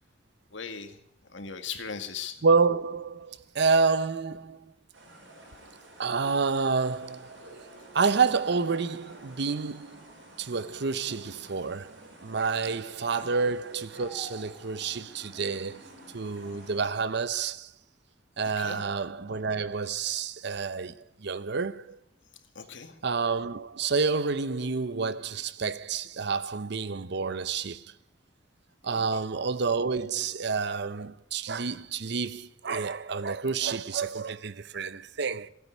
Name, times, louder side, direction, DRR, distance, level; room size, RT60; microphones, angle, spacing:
voice 1, 0.5-1.0 1.3-2.3 12.7-13.3 18.6-18.8 22.6-22.9 28.9-29.2, left 6 dB, 75° left, 1.9 m, -39 dB
voice 2, 2.4-4.7 6.0-7.5 7.9-10.1 10.4-17.7 18.4-22.0 23.0-27.9 28.8-35.5, right 4 dB, 65° right, 0.7 m, -29 dB
sound 1, 4.9-16.9, right 1 dB, 80° right, 5.3 m, -50 dB
15.5 x 9.6 x 9.4 m
head